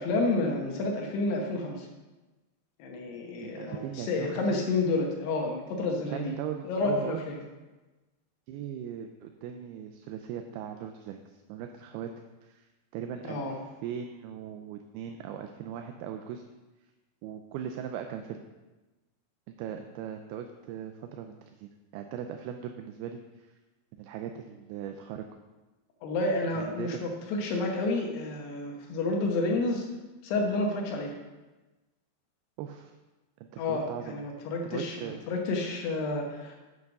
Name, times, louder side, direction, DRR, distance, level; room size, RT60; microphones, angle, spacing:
voice 1, 0.0-1.9 2.8-6.3 6.7-7.4 13.2-13.6 26.0-29.9 30.2-31.2 33.6-36.6, left 2 dB, 80° left, 1 dB, 3.1 m, -30 dB
voice 2, 3.4-4.6 6.1-7.2 8.5-12.1 12.4-12.7 12.9-16.4 17.2-18.4 19.5-23.6 24.0-25.3 26.5-27.0 32.6-32.9 33.4-34.2 34.7-35.2, right 9 dB, 80° right, 6 dB, 2.4 m, -39 dB
8.6 x 7.8 x 5.3 m, 1.2 s
omnidirectional pair, 4.8 m